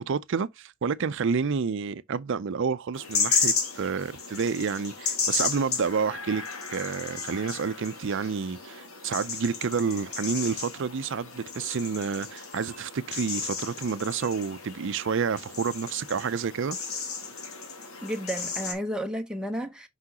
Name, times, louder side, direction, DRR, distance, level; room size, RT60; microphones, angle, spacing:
voice 1, 0.0-6.4 6.7-16.8, right 5 dB, 60° right, 0.5 m, -29 dB
sound 1, 2.9-18.7, left 5 dB, 75° left, 2.0 m, -33 dB
voice 2, 18.0-19.9, equal, 5° right, 0.8 m, -32 dB
5.9 x 5.7 x 2.8 m
head